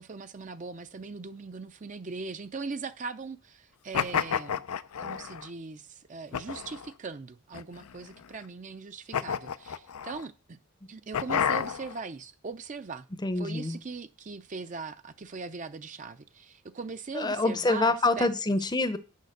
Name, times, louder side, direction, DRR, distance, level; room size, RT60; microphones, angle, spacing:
voice 1, 0.0-4.6 5.0-10.6 10.9-13.0 13.4-18.3, right 4 dB, 35° right, 0.5 m, -40 dB
sound 1, 3.9-5.5 6.3-6.9 7.5-8.3 9.1-10.3 11.1-12.0, left 8 dB, 90° left, 0.5 m, -31 dB
voice 2, 13.2-13.8 17.1-19.0, left 2 dB, 20° left, 0.7 m, -26 dB
9.3 x 6.6 x 6.6 m
head